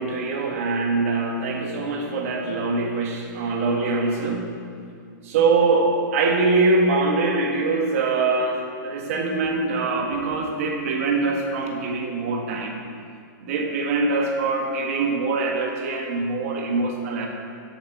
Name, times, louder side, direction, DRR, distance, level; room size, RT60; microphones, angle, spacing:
voice 1, 0.0-4.5 5.2-12.8 13.4-17.3, right 3 dB, 45° right, 1 dB, 1.9 m, -23 dB
12.5 x 7.9 x 6.2 m, 2.2 s
hypercardioid pair, 170°, 11 cm